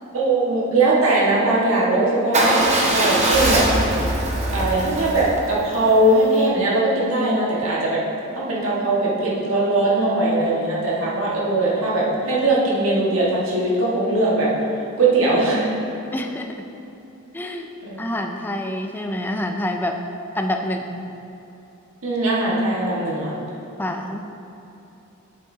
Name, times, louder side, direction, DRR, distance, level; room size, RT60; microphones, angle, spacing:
voice 1, 0.1-3.6 4.5-8.0 8.3-14.5 15.0-15.7 17.8-18.0 22.0-23.3, right 2 dB, 75° right, -6 dB, 1.6 m, -20 dB
Motorcycle / Engine starting / Idling, 2.3-6.4, right 1 dB, 30° right, 0.8 m, -22 dB
voice 2, 16.1-16.7 17.3-17.7 18.0-20.0 20.4-21.1 23.8-24.2, left 1 dB, 10° left, 4 dB, 0.3 m, -27 dB
8.2 x 7.3 x 2.7 m, 2.9 s
head